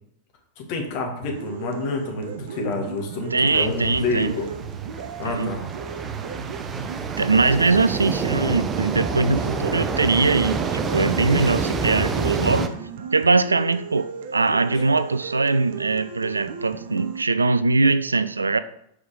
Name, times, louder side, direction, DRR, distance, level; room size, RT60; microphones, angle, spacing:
voice 1, 0.6-4.5 5.2-5.6 14.7-14.8, left 3 dB, 45° left, 2 dB, 1.8 m, -28 dB
sound 1, 1.2-17.2, right 7 dB, 55° right, 0.8 m, -35 dB
voice 2, 3.3-4.3 5.2-5.6 7.2-12.7 13.1-18.6, right 3 dB, 80° right, 14 dB, 0.3 m, -21 dB
sound 2, 3.5-12.7, right 4 dB, 20° right, 0.7 m, -28 dB
6.3 x 4.7 x 5.1 m, 0.75 s
figure-of-eight pair, 90°, 0 cm